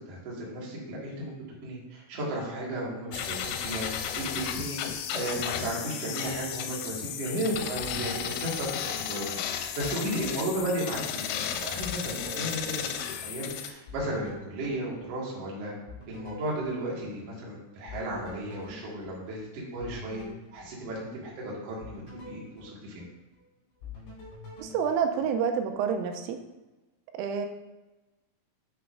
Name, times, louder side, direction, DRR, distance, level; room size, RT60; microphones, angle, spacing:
voice 1, 0.1-1.3 1.6-15.7 16.1-20.2 20.5-22.0 22.3-23.0, right 1 dB, 65° right, -5 dB, 1.5 m, -34 dB
sound 1, 3.1-13.7, left 9 dB, 90° left, 3.3 m, -34 dB
sound 2, 7.8-9.4 9.8-11.4 11.8-15.5 15.9-17.5 17.9-21.3 21.8-23.4 23.8-25.8, left 3 dB, 55° left, 4.2 m, -47 dB
voice 2, 24.6-26.4 27.1-27.5, right 7 dB, 90° right, 6 dB, 3.2 m, -28 dB
8.3 x 5.9 x 2.5 m, 1.1 s
omnidirectional pair, 5.8 m